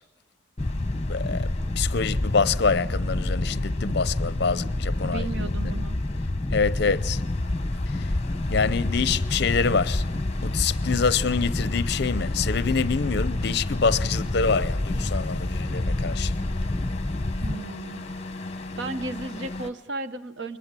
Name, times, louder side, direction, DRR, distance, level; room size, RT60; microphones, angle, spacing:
sound 1, 0.6-19.7, left 2 dB, 35° left, 1.0 m, -38 dB
sound 2, 0.6-17.5, left 1 dB, 20° left, 0.7 m, -28 dB
voice 1, 1.1-1.5 1.8-5.7 6.5-7.2 8.5-10.0 10.4-16.3, left 5 dB, 55° left, 0.6 m, -26 dB
voice 2, 5.0-6.0 17.4-18.0 18.8-20.6, right 3 dB, 65° right, 0.9 m, -34 dB
22.0 x 20.0 x 7.5 m
head